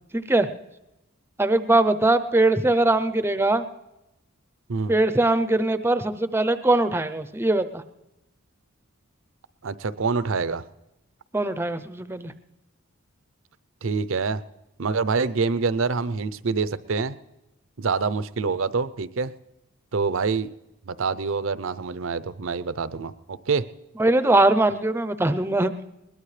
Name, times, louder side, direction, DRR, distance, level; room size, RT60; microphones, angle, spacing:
voice 1, 0.1-0.5 1.4-3.6 4.9-7.8 11.3-12.3 24.0-25.7, right 2 dB, 10° right, 12 dB, 0.6 m, -21 dB
voice 2, 9.6-10.6 13.8-14.4 14.8-17.2 17.8-19.3 19.9-20.5 20.9-23.7, right 4 dB, 65° right, 15 dB, 0.6 m, -26 dB
21.5 x 20.0 x 3.3 m, 0.96 s
head